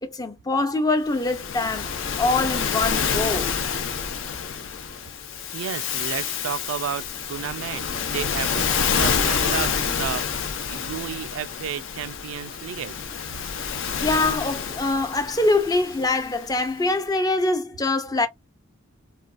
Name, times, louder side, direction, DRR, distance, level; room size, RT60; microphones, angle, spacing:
voice 1, 0.0-1.9 2.2-3.5 14.0-18.3, left 2 dB, 20° left, 0.4 m, -24 dB
Waves surf, 1.1-16.6, left 6 dB, 70° left, 0.6 m, -28 dB
voice 2, 5.5-13.0, right 9 dB, 80° right, 0.3 m, -32 dB
3.3 x 2.3 x 2.4 m
head